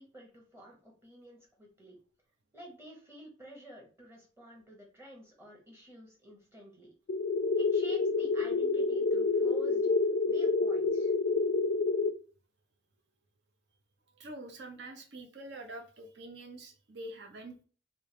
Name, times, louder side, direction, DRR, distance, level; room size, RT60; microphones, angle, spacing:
voice 1, 0.0-2.0 2.5-6.9 7.6-9.9 10.3-11.1, right 1 dB, 15° right, -2 dB, 1.1 m, -51 dB
sound 1, 7.1-12.1, left 3 dB, 65° left, 0.4 m, -28 dB
voice 2, 14.2-17.5, right 1 dB, 70° right, 5 dB, 0.8 m, -45 dB
3.3 x 2.8 x 3.2 m, 0.38 s
head